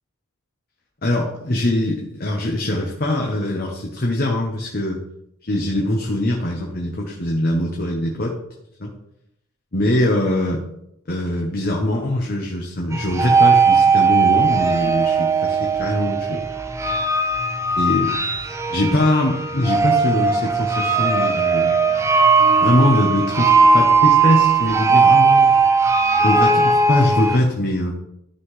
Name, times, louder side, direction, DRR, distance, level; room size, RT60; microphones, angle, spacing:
voice 1, 1.0-5.0 5.4-8.3 8.8-8.9 9.7-10.6 11.1-16.4 17.8-18.1 18.7-21.9 22.6-25.7 26.2-27.9, left 1 dB, 45° left, 0 dB, 1.0 m, -22 dB
sound 1, 12.9-27.4, right 4 dB, 15° right, 0.4 m, -17 dB
12.5 x 5.7 x 3.3 m, 0.80 s
head